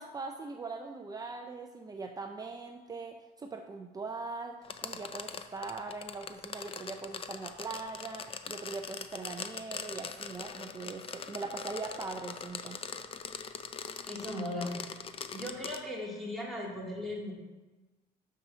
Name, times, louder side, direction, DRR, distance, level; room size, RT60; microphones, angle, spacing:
voice 1, 0.0-12.8, right 3 dB, 20° right, 4 dB, 0.6 m, -41 dB
sound 1, 4.6-15.8, left 6 dB, 35° left, 0.5 m, -42 dB
voice 2, 14.1-14.7 15.3-17.3, left 1 dB, ahead, -4 dB, 2.3 m, -37 dB
5.9 x 5.8 x 6.2 m, 1.2 s
cardioid pair, 110°, 17 cm